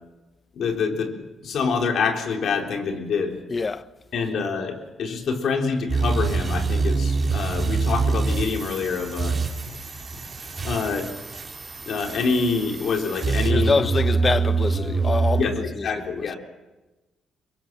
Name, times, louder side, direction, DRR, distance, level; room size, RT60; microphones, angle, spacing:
voice 1, 0.5-1.1 1.4-3.4 4.1-9.4 9.7-9.8 10.6-11.1 11.8-13.8 15.4-16.4, left 5 dB, 65° left, 3.9 m, -26 dB
voice 2, 3.5-3.9 13.5-15.5 15.8-15.9 16.2-16.3, left 4 dB, 30° left, 1.0 m, -25 dB
sound 1, 5.9-15.4, right 4 dB, 30° right, 4.5 m, -25 dB
23.5 x 22.5 x 7.5 m
cardioid pair, 90°, 0 cm